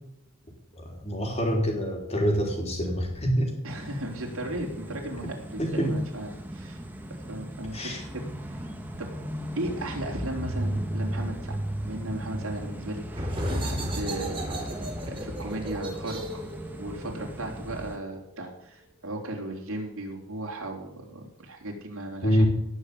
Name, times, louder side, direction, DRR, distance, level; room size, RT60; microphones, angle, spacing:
voice 1, 0.8-3.5 5.6-5.9 7.7-8.0 22.2-22.5, equal, 30° left, 0 dB, 3.9 m, -25 dB
voice 2, 3.6-6.8 7.3-8.7 9.0-9.1 9.6-11.6 11.8-14.4 15.0-16.4 16.8-22.5, right 1 dB, 75° right, 0 dB, 3.8 m, -36 dB
sound 1, 3.7-18.0, right 1 dB, 10° right, 1.4 m, -36 dB
sound 2, 13.1-18.5, equal, 25° right, 3.1 m, -34 dB
18.0 x 6.5 x 8.6 m, 0.80 s
head